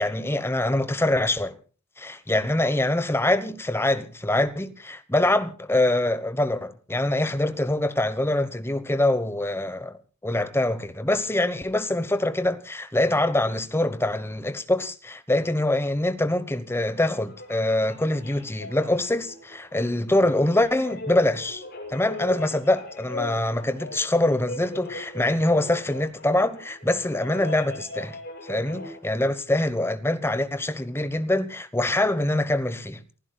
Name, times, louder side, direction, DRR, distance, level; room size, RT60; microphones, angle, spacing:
voice 1, 0.0-1.6 2.0-21.6 21.9-28.2 28.4-33.0, left 1 dB, 10° left, 1.1 m, -24 dB
sound 1, 16.9-29.0, left 2 dB, 50° left, 6.8 m, -40 dB
28.5 x 15.5 x 2.3 m
head